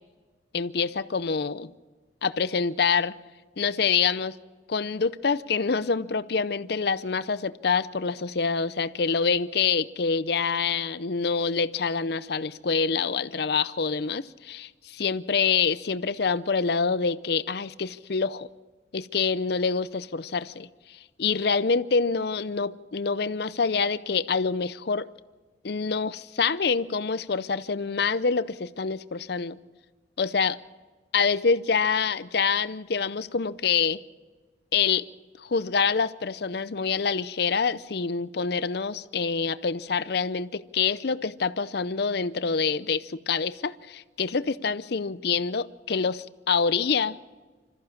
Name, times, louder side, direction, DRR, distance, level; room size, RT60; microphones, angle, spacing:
voice 1, 0.5-1.7 2.2-3.2 3.6-4.4 4.7-18.5 18.9-25.1 25.6-29.6 30.2-30.6 31.1-34.0 34.7-35.1 35.4-47.2, left 5 dB, 55° left, 16 dB, 0.6 m, -26 dB
26.0 x 14.5 x 7.2 m, 1.4 s
head